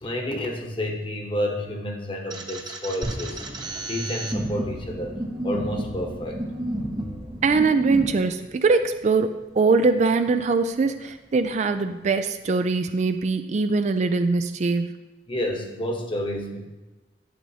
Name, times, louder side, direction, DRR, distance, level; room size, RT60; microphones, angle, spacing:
voice 1, 0.0-5.1 5.4-6.4 15.3-16.7, left 1 dB, 30° left, 2 dB, 1.1 m, -30 dB
sound 1, 2.3-8.1, right 1 dB, 25° right, 0.9 m, -32 dB
sound 2, 3.0-13.3, equal, 80° right, 2.5 m, -43 dB
voice 2, 7.4-15.0, right 4 dB, 40° right, 9 dB, 0.3 m, -22 dB
11.0 x 8.4 x 2.8 m, 1.1 s
head